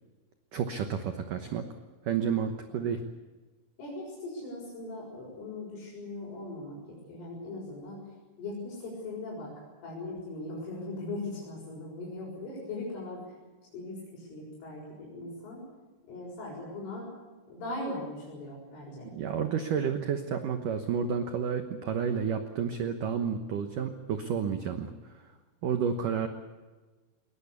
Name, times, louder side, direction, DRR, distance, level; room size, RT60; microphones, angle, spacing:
voice 1, 0.5-1.6 2.0-3.0 19.1-25.1 25.6-26.3, right 7 dB, 75° right, 7 dB, 1.9 m, -30 dB
voice 2, 2.6-2.9 3.8-13.3 13.7-15.6 16.1-17.1 17.5-19.1, left 2 dB, 75° left, -4 dB, 9.1 m, -40 dB
21.5 x 19.5 x 8.3 m, 1.3 s
omnidirectional pair, 5.7 m